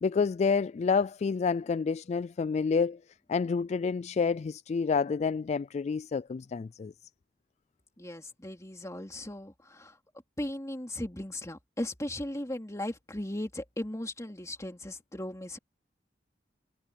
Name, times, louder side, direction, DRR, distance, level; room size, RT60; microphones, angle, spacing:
voice 1, 0.0-3.0 3.3-6.9, left 5 dB, 40° left, 0.3 m, -28 dB
voice 2, 8.0-9.9 10.4-15.6, left 1 dB, 20° left, 2.8 m, -37 dB
head